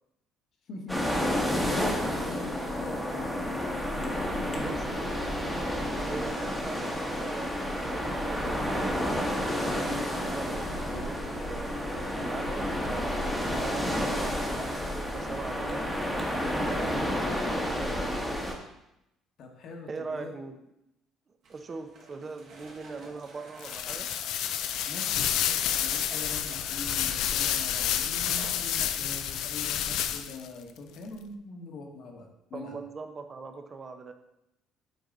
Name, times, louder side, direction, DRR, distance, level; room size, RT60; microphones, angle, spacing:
voice 1, 0.7-5.1 5.4-5.6 19.4-20.3 24.8-32.8, left 3 dB, 55° left, 2 dB, 1.3 m, -43 dB
sound 1, 0.9-18.5, equal, 5° left, 1.1 m, -30 dB
voice 2, 6.0-11.7 12.2-15.8 16.3-17.0 17.3-18.4 19.9-20.6 21.5-24.1 32.5-34.1, right 4 dB, 30° right, 7 dB, 0.7 m, -41 dB
sound 2, 21.4-29.0, right 3 dB, 60° right, 2.0 m, -50 dB
sound 3, 23.6-30.5, left 10 dB, 75° left, 0.4 m, -29 dB
7.9 x 4.7 x 3.9 m, 0.85 s
cardioid pair, 135°, 0 cm